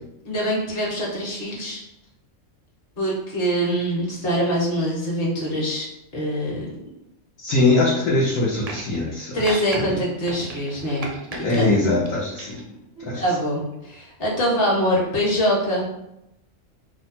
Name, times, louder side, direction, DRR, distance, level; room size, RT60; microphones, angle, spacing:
voice 1, 0.2-1.8 3.0-5.9 6.1-6.7 9.3-11.1 11.3-11.7 13.0-15.9, equal, 50° left, -4 dB, 1.2 m, -24 dB
voice 2, 7.4-10.0 11.3-12.6 13.0-13.2, left 2 dB, 85° left, -6 dB, 1.1 m, -22 dB
sound 1, 8.6-9.1 9.4-9.8 10.2-11.6 12.1-12.7 13.7-13.8, right 2 dB, 55° right, 0.4 m, -35 dB
2.8 x 2.2 x 4.1 m, 0.85 s
omnidirectional pair, 1.4 m